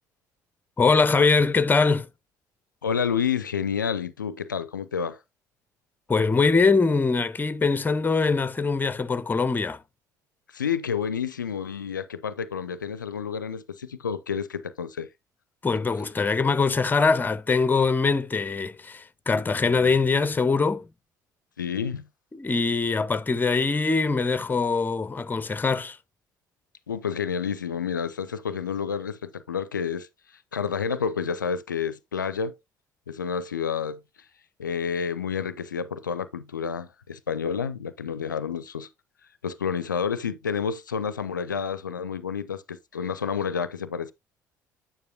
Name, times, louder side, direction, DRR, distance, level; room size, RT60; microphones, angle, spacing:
voice 1, 0.8-2.1 6.1-9.8 15.6-20.9 22.3-26.0, left 4 dB, 20° left, 0.7 m, -23 dB
voice 2, 2.8-5.2 10.5-15.1 21.6-22.1 26.9-30.1 30.5-32.6 33.1-34.0 34.6-38.9 39.4-44.1, left 6 dB, 85° left, 0.4 m, -29 dB
9.4 x 5.4 x 2.6 m
figure-of-eight pair, 55°, 10 cm